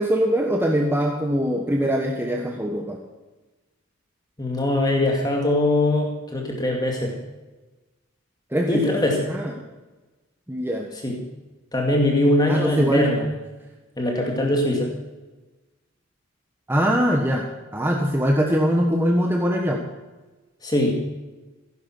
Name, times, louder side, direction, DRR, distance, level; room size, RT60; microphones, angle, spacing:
voice 1, 0.0-3.0 8.5-9.0 9.3-9.5 10.5-10.9 12.5-13.3 16.7-17.4 17.7-19.8, equal, 10° right, 1 dB, 1.3 m, -22 dB
voice 2, 4.4-7.1 8.7-9.3 11.0-11.2 11.7-13.3 14.0-14.9 20.6-20.9, left 1 dB, 20° left, 0 dB, 2.3 m, -22 dB
16.0 x 10.5 x 6.2 m, 1.2 s
head